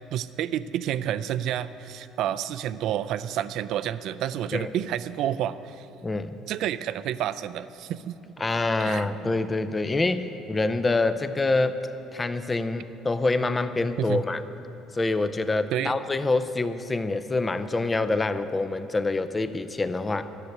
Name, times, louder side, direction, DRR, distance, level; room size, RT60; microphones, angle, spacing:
voice 1, 0.1-5.9 6.5-8.2 8.8-9.3 14.0-14.2 15.7-16.0, right 11 dB, 60° right, 13 dB, 0.4 m, -29 dB
voice 2, 6.0-6.4 8.4-11.8 12.1-14.4 14.9-20.3, left 3 dB, 15° left, 11 dB, 0.5 m, -26 dB
13.0 x 6.6 x 9.2 m, 3.0 s
cardioid pair, 135°, 0 cm